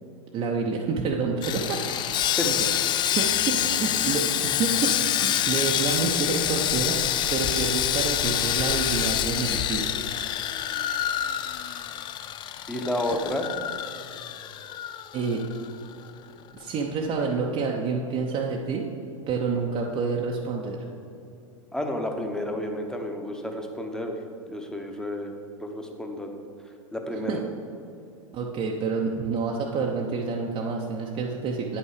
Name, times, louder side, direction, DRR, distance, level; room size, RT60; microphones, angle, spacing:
voice 1, 0.3-1.8 2.1-2.5 3.1-9.9 13.1-13.2 15.1-15.4 16.5-18.9 19.3-20.8 27.1-27.4 28.3-31.8, right 4 dB, 35° right, -1 dB, 0.7 m, -28 dB
Sawing, 1.4-15.7 15.9-16.1 16.6-16.7, left 11 dB, 25° left, 0.3 m, -27 dB
voice 2, 2.4-2.8 12.7-13.5 21.7-24.2 24.5-26.4 26.9-27.4, left 1 dB, 5° left, 3 dB, 0.9 m, -31 dB
9.0 x 5.7 x 4.9 m, 2.6 s
hypercardioid pair, 95°, 17 cm